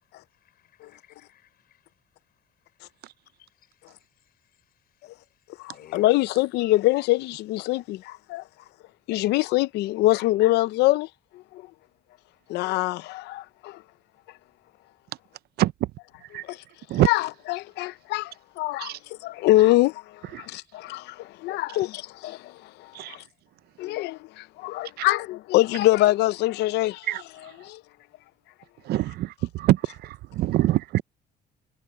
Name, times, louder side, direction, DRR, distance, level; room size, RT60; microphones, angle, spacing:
voice 1, 0.3-1.9 2.7-2.9 3.4-5.1 5.3-6.1, left 11 dB, 65° left, 6.6 m, -58 dB
voice 2, 5.6-8.4 9.1-11.1 12.5-13.8 16.5-16.6 17.0-18.9 19.2-20.0 20.4-22.5 23.1-23.2 23.8-27.1 27.6-27.8, left 17 dB, 85° left, 0.7 m, -24 dB
voice 3, 15.6-15.9 16.3-16.4 16.9-17.1 18.8-19.0 20.3-20.5 22.9-23.2 25.0-25.1 27.1-27.5 28.8-31.0, right 15 dB, 70° right, 0.7 m, -25 dB
cardioid pair, 110°, 17 cm